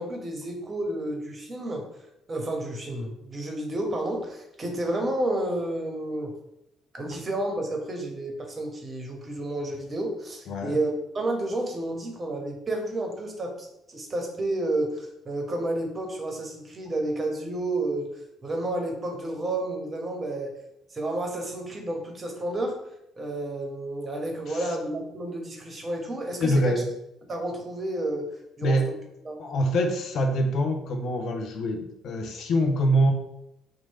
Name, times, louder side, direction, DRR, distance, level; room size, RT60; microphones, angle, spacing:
voice 1, 0.0-1.8 2.3-6.3 6.9-18.1 18.4-20.5 20.9-22.7 23.2-26.7 27.3-28.3 28.6-28.8 29.2-29.4, right 1 dB, 35° right, 2 dB, 1.0 m, -31 dB
voice 2, 26.4-26.8 28.6-28.9 29.4-33.1, equal, 60° left, 4 dB, 0.5 m, -25 dB
3.0 x 2.5 x 4.1 m, 0.82 s
hypercardioid pair, 50°, 0 cm